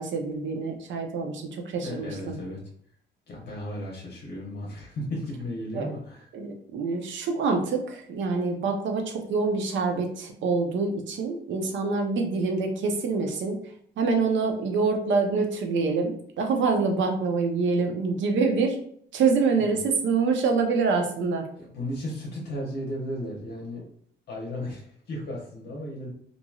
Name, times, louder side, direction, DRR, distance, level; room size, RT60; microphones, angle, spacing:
voice 1, 0.0-2.4 5.7-5.9 6.3-13.6 14.0-18.8 19.1-21.5, right 4 dB, 70° right, 4 dB, 0.6 m, -26 dB
voice 2, 1.8-2.6 3.3-6.3 19.6-19.8 21.6-23.8 24.3-26.1, left 1 dB, 55° left, -2 dB, 0.9 m, -35 dB
2.9 x 2.6 x 2.3 m, 0.62 s
cardioid pair, 90°, 20 cm